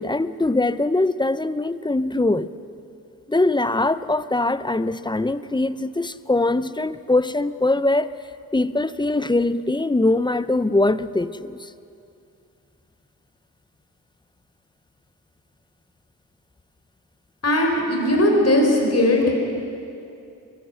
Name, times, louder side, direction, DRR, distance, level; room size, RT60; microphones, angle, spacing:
voice 1, 0.0-2.5 3.3-8.1 8.5-11.7, left 2 dB, 15° left, 15 dB, 0.6 m, -22 dB
voice 2, 17.4-19.4, left 1 dB, 45° left, 1 dB, 4.8 m, -18 dB
22.0 x 16.5 x 7.9 m, 2.6 s
cardioid pair, 70°, 35 cm